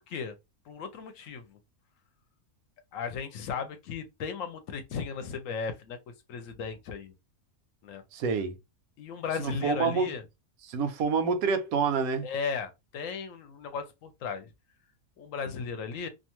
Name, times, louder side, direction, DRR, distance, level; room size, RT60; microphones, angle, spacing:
voice 1, 0.7-1.6 2.9-6.0 6.3-7.1 7.8-8.0 9.0-10.2 12.2-14.5 15.2-16.1, left 6 dB, 70° left, 0.9 m, -36 dB
voice 2, 8.1-8.6 9.4-10.1 10.6-12.3, right 5 dB, 80° right, 1.1 m, -27 dB
2.6 x 2.2 x 2.9 m
omnidirectional pair, 1.5 m